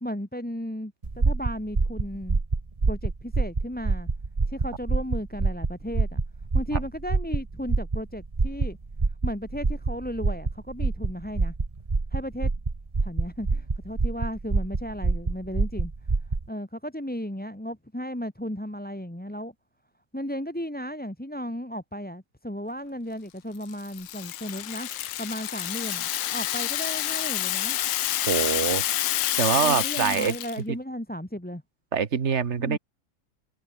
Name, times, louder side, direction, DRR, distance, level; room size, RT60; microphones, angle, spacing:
voice 1, 0.0-2.4 2.9-4.1 4.5-6.2 6.5-8.8 9.2-11.5 12.1-12.5 13.0-15.9 16.5-19.5 20.1-24.9 25.2-27.8 29.5-31.6 32.6-32.8, equal, 5° left, 1.9 m, -35 dB
sound 1, 1.0-16.5, right 3 dB, 20° right, 1.2 m, -26 dB
Rattle (instrument), 23.6-30.6, left 13 dB, 75° left, 1.5 m, -28 dB
voice 2, 28.3-28.8 29.4-30.3 30.7-30.8 31.9-32.8, right 6 dB, 40° right, 1.5 m, -24 dB
omnidirectional pair, 2.1 m